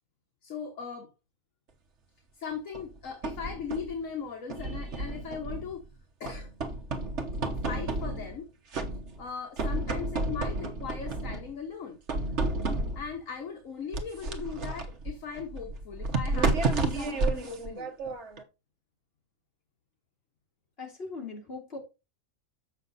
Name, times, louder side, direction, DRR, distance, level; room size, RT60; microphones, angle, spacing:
voice 1, 0.4-1.1 2.4-5.8 6.2-6.5 7.6-8.5 9.2-12.0 12.9-16.6 16.9-18.0, left 6 dB, 65° left, 1.5 m, -38 dB
sound 1, 2.7-4.0 4.5-5.8 6.3-8.4 8.7-9.3 9.6-11.5 12.1-13.2 13.9-18.4, right 3 dB, 55° right, 1.4 m, -31 dB
voice 2, 20.8-21.8, left 3 dB, 45° left, 2.9 m, -39 dB
7.4 x 6.2 x 4.0 m
omnidirectional pair, 1.5 m